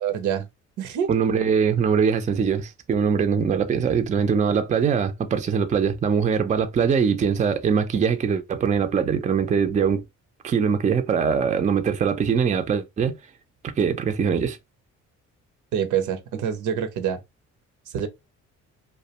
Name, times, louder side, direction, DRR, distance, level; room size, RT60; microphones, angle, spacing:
voice 1, 0.0-0.5 0.8-1.1 15.7-17.2 17.9-18.1, right 8 dB, 75° right, 0.6 m, -26 dB
voice 2, 1.1-10.0 10.4-13.2 13.6-14.6, right 6 dB, 25° right, 0.4 m, -22 dB
2.3 x 2.1 x 2.8 m
cardioid pair, 90°, 30 cm